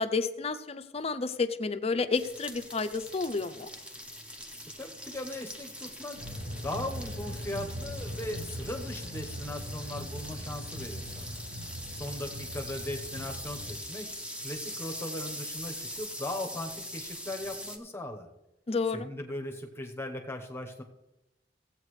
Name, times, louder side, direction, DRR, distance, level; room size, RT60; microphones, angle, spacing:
voice 1, 0.0-3.7 18.7-19.1, left 4 dB, 35° left, 11 dB, 0.6 m, -30 dB
sound 1, 2.1-17.8, equal, 5° right, 0.9 m, -42 dB
voice 2, 4.8-6.2 6.6-11.4 11.9-14.1 14.4-18.3 18.9-20.8, left 1 dB, 15° left, 3 dB, 1.0 m, -38 dB
sound 2, 6.1-13.7, equal, 80° right, 3.2 m, -40 dB
16.0 x 8.2 x 3.2 m, 0.93 s
head